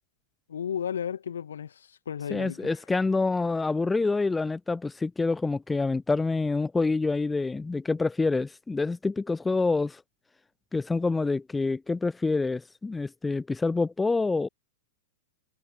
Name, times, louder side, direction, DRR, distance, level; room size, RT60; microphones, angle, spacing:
voice 1, 0.5-2.8, left 8 dB, 70° left, 1.2 m, -34 dB
voice 2, 2.3-10.0 10.7-14.5, left 3 dB, 10° left, 0.3 m, -27 dB
figure-of-eight pair, 100°, 0 cm